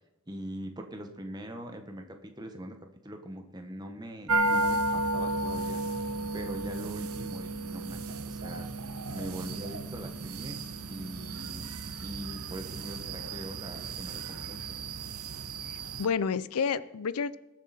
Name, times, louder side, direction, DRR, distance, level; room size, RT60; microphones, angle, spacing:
voice 1, 0.3-2.7 3.0-5.8 6.3-8.7 9.1-10.6 10.9-11.7 12.0-14.8, right 1 dB, 20° right, 5 dB, 1.2 m, -42 dB
sound 1, 4.3-16.1, right 2 dB, 80° right, 1.0 m, -33 dB
voice 2, 15.7-17.4, left 6 dB, 85° left, 17 dB, 0.5 m, -30 dB
20.5 x 7.5 x 4.3 m, 0.98 s
head